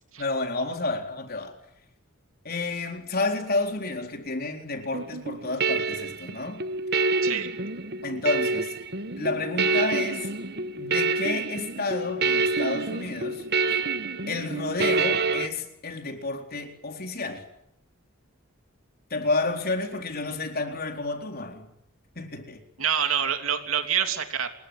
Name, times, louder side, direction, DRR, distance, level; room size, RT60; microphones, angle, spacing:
voice 1, 0.2-1.6 2.4-6.6 8.0-8.7 9.2-10.3 10.8-13.5 14.3-17.4 19.1-21.7 22.2-22.6, left 3 dB, 45° left, 4.1 m, -30 dB
sound 1, 4.9-15.5, right 4 dB, 50° right, 1.4 m, -27 dB
voice 2, 22.8-24.5, right 8 dB, 70° right, 3.2 m, -26 dB
27.5 x 22.0 x 9.7 m
head